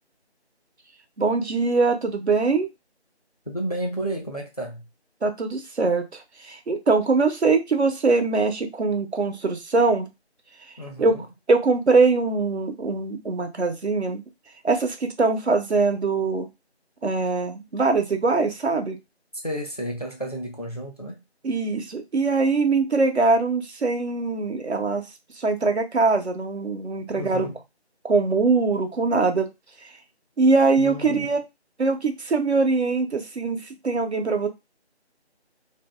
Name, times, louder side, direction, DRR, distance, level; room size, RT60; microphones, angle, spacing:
voice 1, 1.2-2.7 5.2-10.1 11.0-11.2 11.5-14.2 14.6-16.5 17.0-19.0 21.4-25.0 25.4-27.5 28.0-29.5 30.4-31.4 31.8-34.5, right 3 dB, 75° right, 0.8 m, -22 dB
voice 2, 3.5-4.8 10.8-11.2 19.4-21.2 27.1-27.6 30.8-31.3, right 1 dB, 35° left, 0.5 m, -31 dB
2.6 x 2.5 x 2.2 m
figure-of-eight pair, 170°, 33 cm